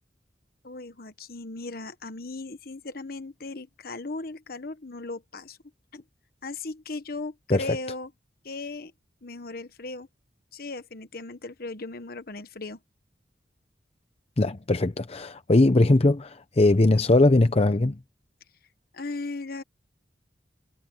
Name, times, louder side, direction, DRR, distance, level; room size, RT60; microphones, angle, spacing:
voice 1, 0.6-5.6 5.9-6.0 6.4-8.1 8.4-8.9 9.2-10.1 10.5-12.8 18.9-19.6, left 3 dB, 60° left, 1.2 m, -37 dB
voice 2, 14.4-18.0, left 2 dB, 35° left, 0.7 m, -20 dB
head